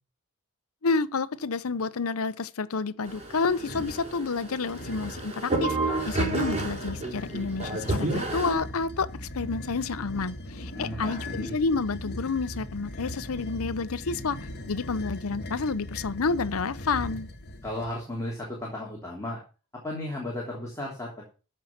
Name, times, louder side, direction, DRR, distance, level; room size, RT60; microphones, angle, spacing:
voice 1, 0.8-5.8 6.1-14.4 14.7-17.3, left 4 dB, 75° left, 0.7 m, -29 dB
sound 1, 3.1-8.5, right 2 dB, 30° right, 4.4 m, -31 dB
sound 2, 3.6-4.1 4.7-5.3 5.9-17.9, left 1 dB, 50° left, 1.8 m, -39 dB
voice 2, 10.7-11.6 17.6-19.4 19.8-21.3, left 1 dB, 15° left, 3.0 m, -35 dB
13.5 x 5.6 x 5.8 m
head